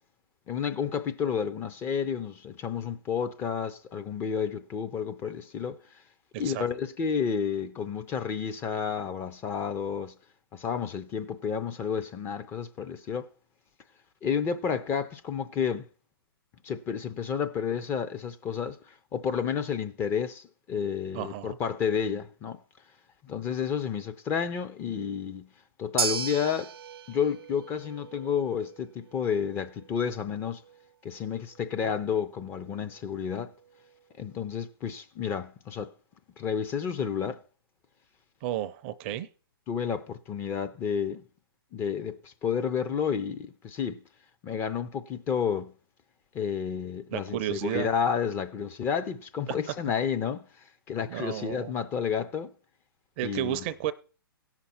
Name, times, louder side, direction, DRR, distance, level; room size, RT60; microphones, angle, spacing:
voice 1, 0.5-5.8 6.4-10.2 10.5-13.3 14.2-15.9 16.6-22.6 23.2-25.5 25.8-26.7 27.1-30.6 31.0-33.5 34.2-35.9 36.4-37.4 39.7-41.2 41.7-44.0 44.4-45.7 46.3-50.5 50.9-52.5 53.2-53.6, left 7 dB, 20° left, 0.5 m, -31 dB
voice 2, 21.1-21.6 38.4-39.3 47.1-47.9 49.5-49.6 51.1-51.7 53.2-53.9, right 12 dB, 30° right, 0.5 m, -32 dB
sound 1, 26.0-34.3, right 6 dB, 75° right, 0.6 m, -38 dB
17.0 x 5.9 x 4.3 m
hypercardioid pair, 140°, 13 cm